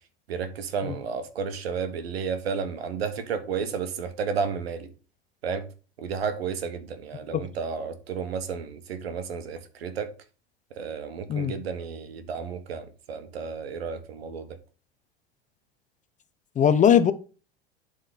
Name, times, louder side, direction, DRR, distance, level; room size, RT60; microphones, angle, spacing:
voice 1, 0.3-4.9 5.4-5.7 6.0-10.1 10.7-14.6, right 6 dB, 70° right, 1.4 m, -32 dB
voice 2, 16.6-17.1, left 8 dB, 25° left, 0.7 m, -19 dB
11.5 x 4.0 x 3.9 m
figure-of-eight pair, 85°, 32 cm